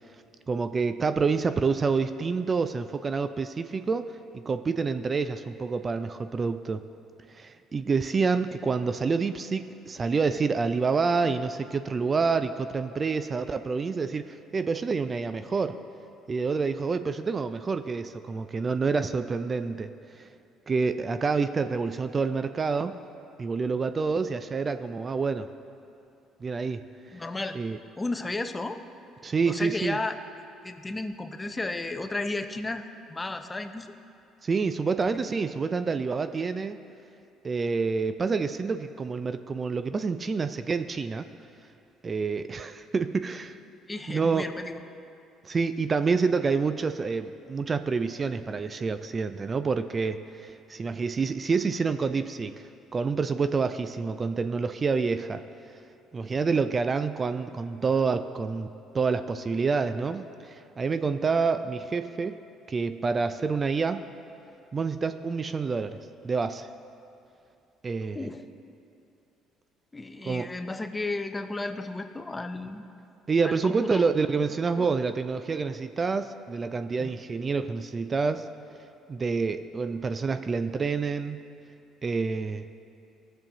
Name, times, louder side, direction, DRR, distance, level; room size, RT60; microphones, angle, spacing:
voice 1, 0.5-4.1 4.3-6.8 7.4-15.8 16.3-20.3 20.7-23.0 23.4-25.5 26.4-26.8 27.5-27.8 29.2-30.0 34.4-36.8 37.4-41.3 42.0-43.6 44.1-44.5 45.4-52.5 52.9-55.4 56.1-62.4 62.7-64.0 64.7-66.7 67.8-68.3 70.2-70.5 73.3-78.5 79.1-81.4 82.0-82.7, right 4 dB, 35° right, 11 dB, 0.4 m, -28 dB
voice 2, 27.1-27.6 28.0-28.8 29.5-30.2 30.6-33.9 43.9-44.8 68.1-68.4 69.9-72.9 73.4-74.0 74.8-74.9 77.0-77.1, left 2 dB, 20° left, 8 dB, 0.6 m, -33 dB
16.0 x 7.0 x 2.9 m, 2.6 s
supercardioid pair, 75°, 0 cm